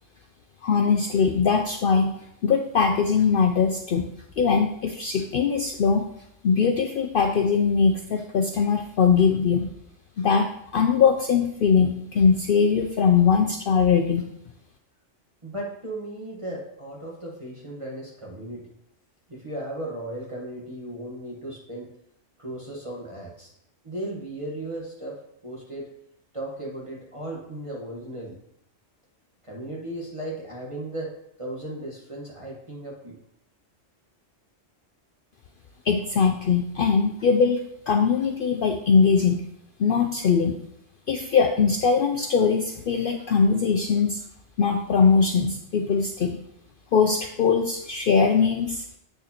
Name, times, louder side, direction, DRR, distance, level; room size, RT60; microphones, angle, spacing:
voice 1, 0.6-2.1 2.4-4.1 4.4-6.0 6.4-9.7 10.2-10.5 10.7-14.2 35.8-39.4 39.8-40.6 41.1-44.2 44.6-46.4 46.9-49.0, left 5 dB, 60° left, 4 dB, 0.6 m, -21 dB
voice 2, 15.4-18.7 19.3-21.9 22.4-23.5 23.8-25.2 25.4-25.9 26.3-28.4 29.4-31.1 31.4-33.2, right 1 dB, 25° right, -3 dB, 1.3 m, -36 dB
8.0 x 6.3 x 2.9 m, 0.76 s
omnidirectional pair, 1.3 m